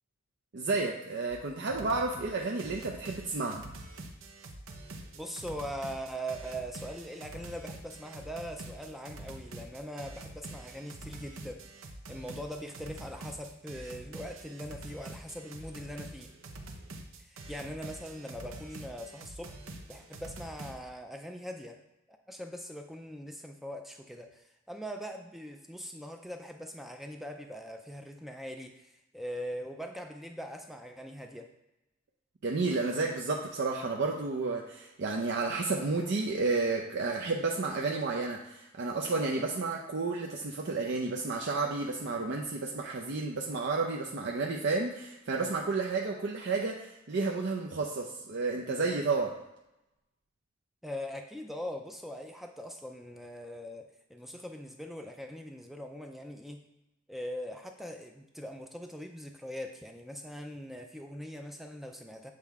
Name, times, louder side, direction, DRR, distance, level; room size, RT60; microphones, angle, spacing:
voice 1, 0.5-3.6 32.4-49.3, right 3 dB, 60° right, 0 dB, 0.6 m, -31 dB
sound 1, 1.3-1.4 1.7-2.3 2.6-20.8, right 2 dB, 85° right, 0.8 m, -46 dB
voice 2, 5.1-11.6 12.1-16.3 17.2-19.6 19.9-21.8 22.1-31.5 50.8-56.6 57.1-62.3, equal, ahead, 4 dB, 0.4 m, -41 dB
7.6 x 4.3 x 3.5 m, 0.93 s
head